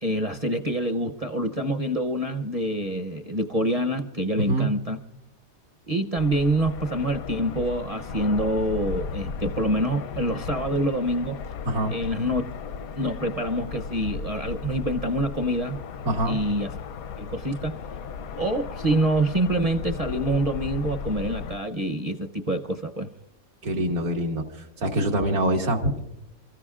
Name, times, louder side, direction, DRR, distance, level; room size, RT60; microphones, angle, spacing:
voice 1, 0.0-5.0 5.9-11.4 11.9-12.4 13.0-15.8 16.3-16.7 17.2-17.8 18.4-23.1, right 1 dB, 35° right, 6 dB, 0.6 m, -26 dB
voice 2, 4.4-4.7 11.7-11.9 16.1-16.4 23.6-24.4 24.8-26.0, right 1 dB, 85° right, 1 dB, 2.3 m, -24 dB
sound 1, 6.2-21.6, left 6 dB, 80° left, 1.1 m, -36 dB
29.5 x 15.0 x 2.4 m, 0.90 s
omnidirectional pair, 1.5 m